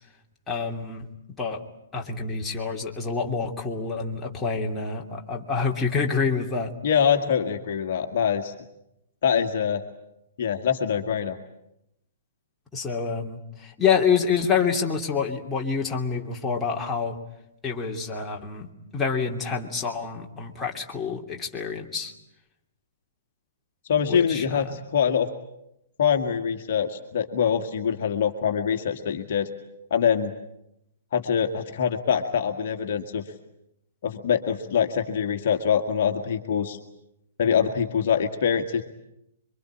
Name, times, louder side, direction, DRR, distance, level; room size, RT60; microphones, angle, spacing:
voice 1, 0.5-1.1 1.4-1.6 1.9-6.7 12.7-17.2 17.6-22.1 24.1-24.7, left 5 dB, 10° left, -1 dB, 2.9 m, -27 dB
voice 2, 6.8-8.5 9.2-9.8 10.4-11.4 23.9-25.3 26.0-29.5 29.9-30.3 31.1-33.2 34.0-36.8 37.4-38.8, left 7 dB, 50° left, 5 dB, 1.8 m, -24 dB
26.5 x 24.0 x 8.8 m, 0.84 s
figure-of-eight pair, 115°, 0 cm